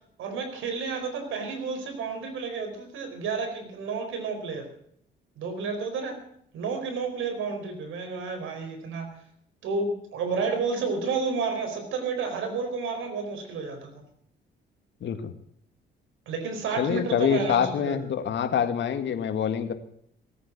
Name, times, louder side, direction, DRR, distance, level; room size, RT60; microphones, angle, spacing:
voice 1, 0.2-4.6 5.4-6.2 6.5-9.1 9.6-13.9 16.3-18.0, right 4 dB, 80° right, 5 dB, 4.6 m, -31 dB
voice 2, 15.0-15.3 16.8-19.7, left 8 dB, 65° left, 9 dB, 1.9 m, -26 dB
17.0 x 9.5 x 8.3 m, 0.67 s
cardioid pair, 90°, 20 cm